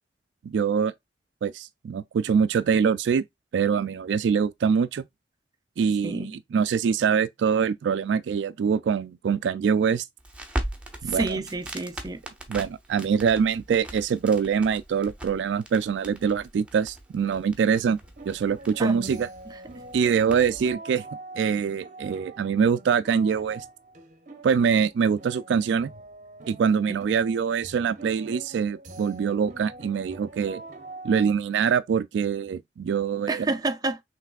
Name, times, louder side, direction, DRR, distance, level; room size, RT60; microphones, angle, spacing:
voice 1, 0.4-0.9 1.4-3.2 3.5-5.0 5.8-10.1 11.0-11.4 12.5-18.0 18.3-19.3 19.9-21.0 21.4-23.6 24.4-25.9 26.5-30.6 31.0-33.5, right 6 dB, 80° right, 0.3 m, -24 dB
voice 2, 6.0-6.4 11.1-12.2 18.8-19.2 26.9-27.0 33.3-34.0, right 3 dB, 20° right, 0.5 m, -28 dB
Crackle, 10.2-20.7, right 1 dB, 5° right, 1.0 m, -39 dB
sound 1, 18.0-31.3, right 2 dB, 45° right, 0.8 m, -44 dB
5.7 x 3.2 x 2.3 m
head